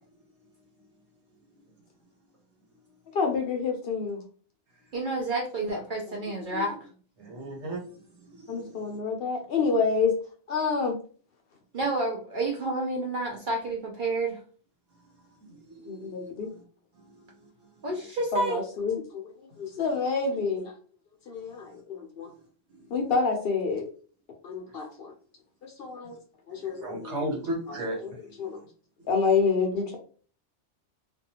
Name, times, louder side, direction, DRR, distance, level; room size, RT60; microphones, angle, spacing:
voice 1, 3.1-4.2 6.4-6.6 8.5-10.1 10.5-10.9 15.9-16.5 18.3-19.2 19.6-20.7 21.3-22.3 22.9-23.9 24.4-25.1 25.6-26.2 26.5-27.4 28.4-28.6 29.1-30.0, left 5 dB, 60° left, 3 dB, 0.7 m, -28 dB
voice 2, 4.9-6.8 11.7-14.4 17.8-18.6, right 2 dB, 55° right, -1 dB, 0.6 m, -29 dB
voice 3, 7.2-7.8 8.3-8.8 15.5-16.6 17.0-17.5 22.7-22.9 26.5-28.6, right 1 dB, 70° right, -1 dB, 1.3 m, -37 dB
2.5 x 2.3 x 2.8 m, 0.41 s
omnidirectional pair, 1.2 m